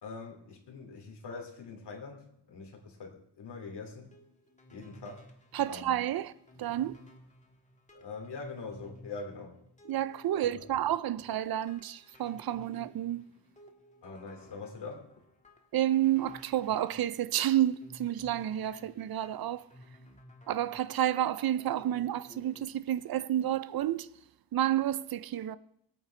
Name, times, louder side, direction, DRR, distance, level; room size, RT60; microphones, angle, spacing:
voice 1, 0.0-4.1 4.7-5.3 5.7-6.0 7.9-9.6 10.7-10.8 14.0-15.0, left 4 dB, 65° left, 2.8 m, -43 dB
sound 1, 4.0-22.7, left 1 dB, 15° left, 1.9 m, -56 dB
voice 2, 5.5-6.3 6.6-7.0 9.9-13.3 15.7-19.7 20.5-24.1 24.5-25.6, right 12 dB, 55° right, 0.6 m, -30 dB
22.5 x 8.9 x 3.3 m
cardioid pair, 95°, 43 cm